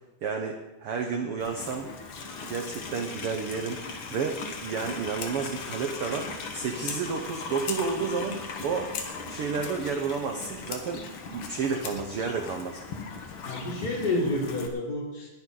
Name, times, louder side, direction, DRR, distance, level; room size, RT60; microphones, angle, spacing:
voice 1, 0.2-1.9 2.5-3.8 4.1-8.9 9.3-11.0 11.3-12.8, right 5 dB, 80° right, 4 dB, 1.2 m, -31 dB
Livestock farm animals working animals, 1.4-14.7, left 4 dB, 55° left, 1.4 m, -39 dB
Fire, 5.0-12.2, left 7 dB, 75° left, 3.0 m, -43 dB
voice 2, 13.4-15.3, left 2 dB, 25° left, -4 dB, 3.9 m, -29 dB
20.0 x 10.0 x 4.0 m, 1.1 s
omnidirectional pair, 4.0 m